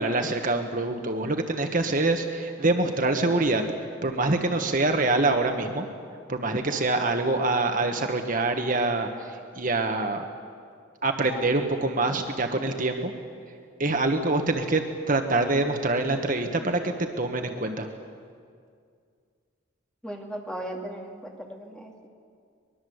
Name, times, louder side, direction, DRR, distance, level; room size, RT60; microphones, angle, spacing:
voice 1, 0.0-3.6 4.0-5.9 6.3-10.2 11.0-13.1 13.8-17.9, right 2 dB, 45° right, 5 dB, 1.3 m, -25 dB
voice 2, 20.0-22.1, right 1 dB, 5° left, 1 dB, 2.4 m, -37 dB
23.0 x 21.5 x 7.9 m, 2.2 s
head